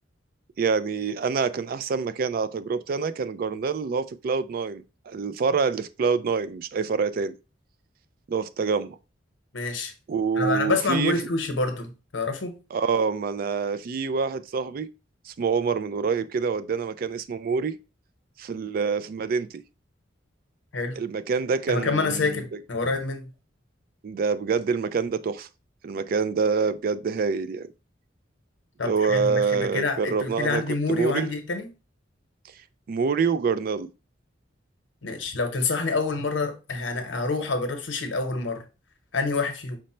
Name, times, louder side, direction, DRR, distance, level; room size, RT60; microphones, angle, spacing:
voice 1, 0.6-7.3 8.3-9.0 10.1-11.2 12.7-14.9 15.3-17.8 18.4-19.6 21.0-22.4 24.0-25.5 25.8-27.6 28.8-30.6 30.9-31.3 32.9-33.9, right 5 dB, 50° right, 0.3 m, -26 dB
voice 2, 9.5-9.9 10.4-12.6 20.7-21.0 21.7-23.3 28.8-31.7 35.0-38.6 39.1-39.8, left 3 dB, 85° left, 0.9 m, -27 dB
5.1 x 2.1 x 4.2 m
head